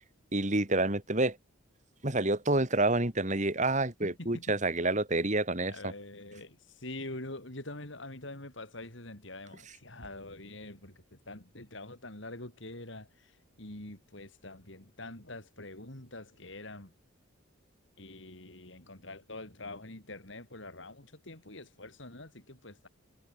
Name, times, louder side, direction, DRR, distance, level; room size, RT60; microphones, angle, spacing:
voice 1, 0.3-1.4 2.0-5.9 9.7-9.8, right 2 dB, 35° right, 2.8 m, -28 dB
voice 2, 4.0-4.4 5.7-6.6 6.8-11.0 11.3-13.1 13.6-16.9 18.0-22.9, left 2 dB, 60° left, 4.3 m, -45 dB
head